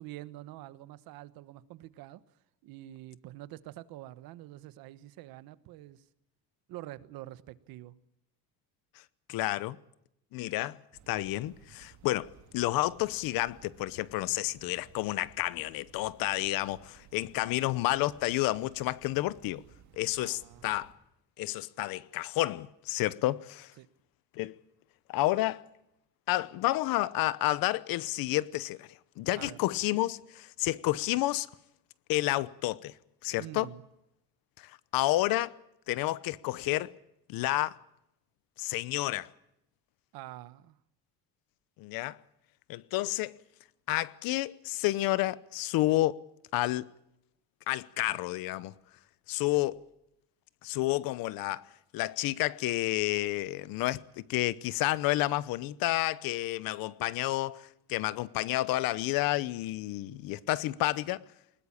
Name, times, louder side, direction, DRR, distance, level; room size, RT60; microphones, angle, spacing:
voice 1, 0.0-2.2 2.6-6.1 6.7-7.9 17.3-17.6 20.2-20.7 23.8-23.9 29.3-29.6 33.4-33.8 40.1-40.8, right 15 dB, 70° right, 1.2 m, -46 dB
voice 2, 9.3-9.8 10.3-10.8 11.1-19.6 20.0-20.9 21.4-23.7 24.4-24.6 25.1-25.6 26.3-28.9 29.2-31.5 32.1-32.9 33.2-33.7 34.6-35.6 35.9-36.9 37.3-37.8 38.6-39.3 41.8-42.2 42.7-43.3 43.9-46.2 46.5-46.9 47.7-48.7 49.3-49.8 50.6-51.6 51.9-61.2, left 17 dB, 70° left, 0.9 m, -30 dB
sound 1, 10.9-20.9, right 8 dB, 50° right, 3.1 m, -58 dB
20.5 x 19.5 x 8.6 m
cardioid pair, 170°, 37 cm